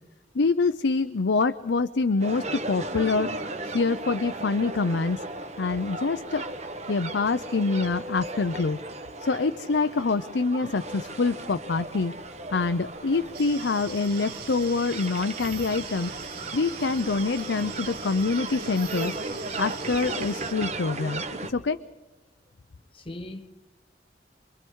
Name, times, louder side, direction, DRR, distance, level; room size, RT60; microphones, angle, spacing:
voice 1, 0.3-3.3 3.6-5.2 5.6-6.4 6.9-8.8 9.2-12.1 12.5-16.1 16.5-19.2 19.6-21.2 21.5-21.8, left 4 dB, 90° left, 0.6 m, -25 dB
sound 1, 2.2-21.5, right 2 dB, 40° right, 1.4 m, -36 dB
sound 2, 13.3-20.5, right 8 dB, 60° right, 1.7 m, -42 dB
voice 2, 22.9-23.5, left 1 dB, 30° left, 0.9 m, -40 dB
26.5 x 22.5 x 4.7 m
head